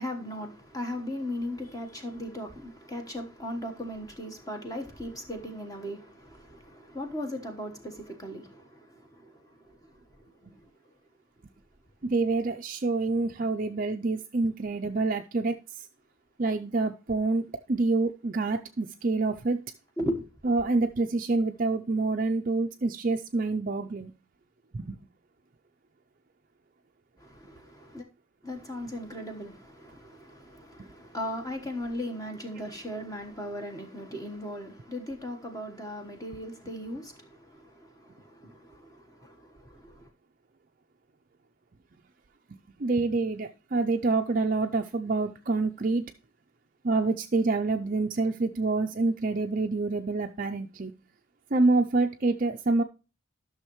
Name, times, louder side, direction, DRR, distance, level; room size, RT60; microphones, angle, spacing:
voice 1, 0.0-9.3 20.0-20.2 27.2-28.0 28.4-40.1, equal, 15° left, 1.2 m, -37 dB
voice 2, 12.0-15.6 16.4-19.6 20.4-24.1 24.7-25.0 42.8-46.1 46.8-50.9 51.5-52.8, right 3 dB, 40° right, 0.5 m, -27 dB
12.0 x 6.4 x 3.0 m
head